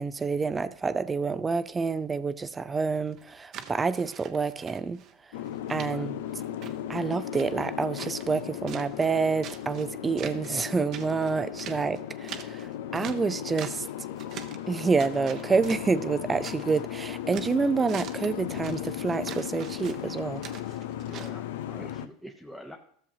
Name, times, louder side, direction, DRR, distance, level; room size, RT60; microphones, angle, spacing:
voice 1, 0.0-5.0 5.7-6.2 6.9-13.8 14.7-20.4, right 4 dB, 20° right, 0.5 m, -28 dB
sound 1, 2.9-5.1 5.5-5.9 6.3-8.4 8.7-9.9 10.2-10.6 10.9-13.9 14.2-14.7 15.0-16.8 17.1-21.3, right 9 dB, 50° right, 0.8 m, -44 dB
Boat Water vehicle, 5.3-22.1, left 11 dB, 75° left, 0.5 m, -36 dB
voice 2, 21.0-22.8, equal, ahead, 0.9 m, -45 dB
13.5 x 7.1 x 2.8 m
hypercardioid pair, 90°, 0 cm